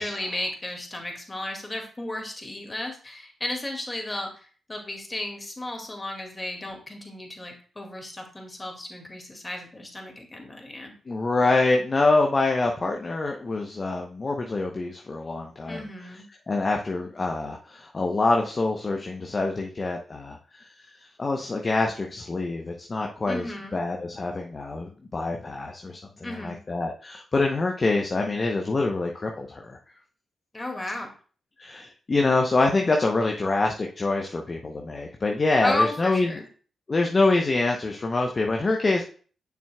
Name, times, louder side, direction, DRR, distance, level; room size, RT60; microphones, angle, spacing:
voice 1, 0.0-10.9 15.7-16.3 23.3-23.8 26.2-26.6 30.5-31.1 35.6-36.5, left 1 dB, 25° left, 2 dB, 2.1 m, -33 dB
voice 2, 11.1-15.8 16.5-20.7 21.2-26.0 26.4-29.8 31.6-36.3 36.9-39.0, left 3 dB, 40° left, 2 dB, 0.8 m, -25 dB
7.1 x 6.1 x 2.3 m, 0.41 s
hypercardioid pair, 40°, 0 cm